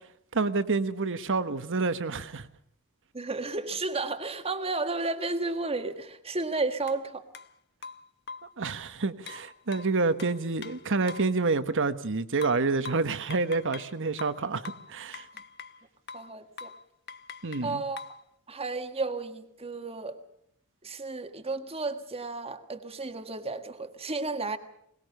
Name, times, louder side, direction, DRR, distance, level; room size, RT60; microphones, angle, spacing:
voice 1, 0.3-2.5 8.6-15.3 17.4-17.8, right 3 dB, 60° right, 1.2 m, -28 dB
voice 2, 3.1-7.2 16.1-16.7 17.6-18.0 18.5-20.2 20.8-24.6, right 3 dB, 25° right, 1.6 m, -32 dB
sound 1, 6.9-7.0 7.3-7.5 7.8-8.6 9.3-11.4 12.4-13.9 14.2-15.8 16.1-16.3 16.6-16.8 17.1-18.2, left 5 dB, 50° left, 1.0 m, -43 dB
22.0 x 20.0 x 6.6 m
head